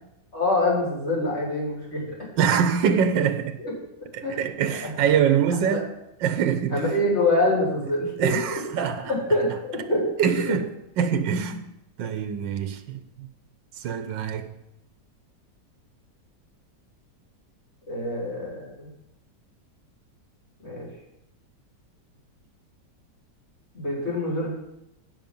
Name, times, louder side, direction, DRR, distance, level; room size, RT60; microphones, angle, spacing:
voice 1, 0.3-2.2 3.6-3.7 4.2-4.4 4.7-4.9 5.5-5.8 6.7-8.6 9.0-10.1 17.9-18.9 20.6-20.9 23.7-24.5, left 1 dB, 35° left, 3.9 m, -25 dB
voice 2, 2.4-3.6 4.1-5.9 6.2-6.8 8.2-9.1 10.2-10.6 11.0-11.6 12.0-13.3 13.8-14.5, right 7 dB, 85° right, 1.5 m, -24 dB
15.5 x 5.6 x 5.4 m
omnidirectional pair, 1.9 m